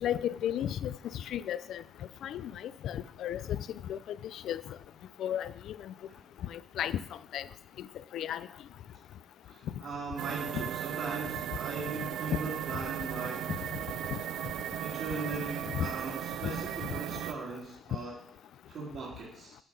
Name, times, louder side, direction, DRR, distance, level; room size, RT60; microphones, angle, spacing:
voice 1, 0.0-0.9 1.3-1.8 2.2-2.5 2.8-3.6 3.9-4.6 5.2-5.8 6.5-7.0 7.3-7.4 8.1-8.5 15.7-15.9 16.4-16.5, left 10 dB, 65° left, 16 dB, 0.3 m, -33 dB
voice 2, 9.4-13.5 14.8-18.2 18.7-19.5, right 3 dB, 45° right, -5 dB, 1.6 m, -39 dB
sound 1, 10.2-17.3, right 11 dB, 70° right, 0.3 m, -37 dB
6.6 x 5.8 x 4.9 m, 0.72 s
cardioid pair, 155°, 0 cm